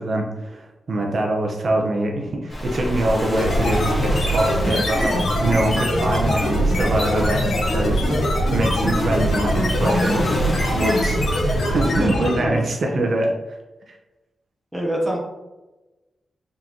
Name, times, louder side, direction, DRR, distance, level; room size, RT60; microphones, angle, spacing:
voice 1, 0.0-13.6 13.9-14.0, right 1 dB, 55° right, 0 dB, 0.6 m, -24 dB
Waves surf, 2.5-11.1, equal, 30° left, 1.3 m, -30 dB
sound 1, 3.4-12.5, equal, 75° left, 1.3 m, -22 dB
voice 2, 12.0-12.7 14.7-15.2, right 1 dB, 5° right, -1 dB, 0.9 m, -25 dB
3.8 x 3.7 x 2.9 m, 1.1 s
wide cardioid pair, 120°, 0 cm